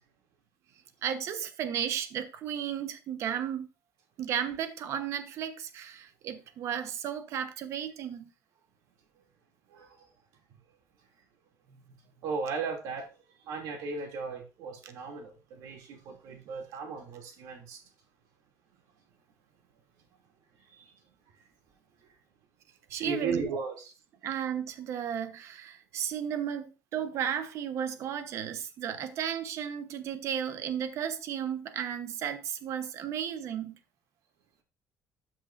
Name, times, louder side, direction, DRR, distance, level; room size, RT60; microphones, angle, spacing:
voice 1, 1.0-3.7 4.2-8.3 22.9-23.6 24.2-33.7, right 9 dB, 55° right, 1.0 m, -34 dB
voice 2, 12.2-13.1 13.5-17.8 22.9-23.8, right 4 dB, 80° right, 2.7 m, -36 dB
12.5 x 6.1 x 2.6 m
cardioid pair, 165°, 6 cm